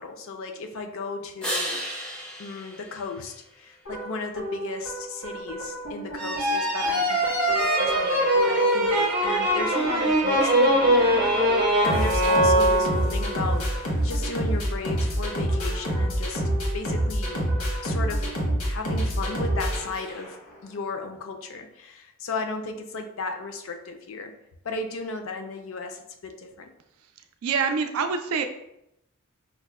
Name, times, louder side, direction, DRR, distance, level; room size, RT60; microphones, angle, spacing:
voice 1, 0.0-1.8 2.4-13.7 14.0-16.4 16.7-17.4 17.8-18.4 18.6-20.4 20.6-24.3 24.6-26.7, left 3 dB, 65° left, 5 dB, 0.4 m, -35 dB
sound 1, 1.4-4.0 9.7-13.7, equal, 5° left, 0.4 m, -38 dB
sound 2, 3.9-20.5, right 1 dB, 90° left, 1.1 m, -29 dB
sound 3, 6.2-13.3, right 1 dB, 40° right, 0.6 m, -22 dB
voice 2, 27.4-28.4, right 5 dB, 80° right, 7 dB, 0.4 m, -25 dB
5.2 x 2.1 x 2.3 m, 0.83 s
head